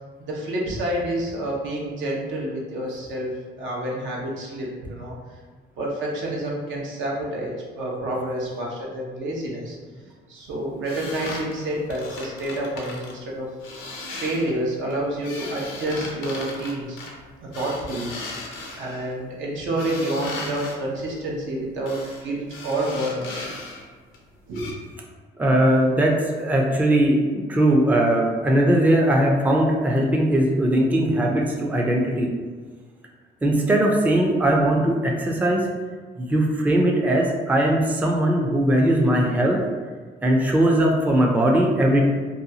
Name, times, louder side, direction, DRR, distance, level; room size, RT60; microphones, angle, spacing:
voice 1, 0.2-5.2 5.8-9.8 10.3-13.5 14.1-17.0 17.4-18.1 18.8-23.6 24.5-24.7, right 1 dB, 75° right, -2 dB, 0.7 m, -28 dB
sound 1, 10.8-13.1 13.6-14.5 14.9-19.1 19.8-20.8 21.9-22.2 22.5-23.8 24.1-24.2 24.5-24.7, left 2 dB, 90° left, 0.6 m, -37 dB
voice 2, 25.4-32.3 33.4-35.7 36.2-39.6 40.2-42.0, right 1 dB, 10° right, -1 dB, 0.4 m, -20 dB
2.6 x 2.3 x 2.7 m, 1.5 s
cardioid pair, 90°, 20 cm